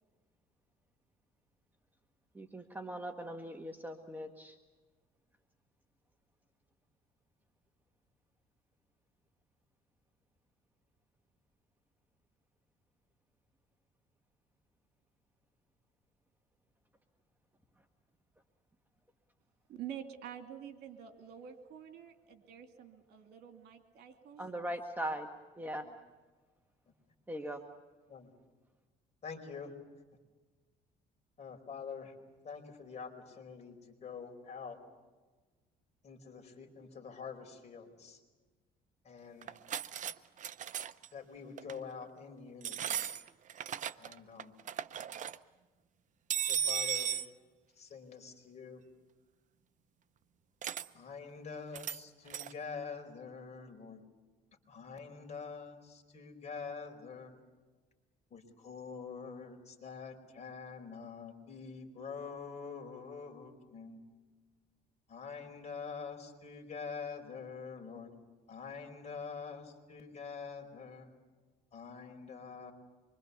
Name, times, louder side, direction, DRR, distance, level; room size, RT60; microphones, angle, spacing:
voice 1, 2.3-4.6 24.4-25.3 25.5-25.9 27.3-27.6, right 1 dB, 10° right, 4 dB, 1.5 m, -40 dB
voice 2, 19.7-24.5, right 9 dB, 75° right, 6 dB, 2.7 m, -48 dB
voice 3, 29.2-29.7 31.4-32.1 32.4-34.8 36.0-38.2 39.0-39.6 41.1-43.0 44.0-44.5 46.4-47.3 47.8-48.8 50.9-54.0 54.7-57.3 58.3-64.1 65.1-68.1 68.5-71.1 71.7-72.7, left 5 dB, 40° left, 3 dB, 4.8 m, -46 dB
sound 1, 39.4-40.1 40.4-41.1 41.6-41.8 42.6-44.1 44.4-45.4 46.3-47.3 50.6-50.9 51.7-52.0 52.3-52.5, right 8 dB, 50° right, 0.8 m, -36 dB
25.5 x 24.0 x 7.0 m, 1.3 s
cardioid pair, 110°, 17 cm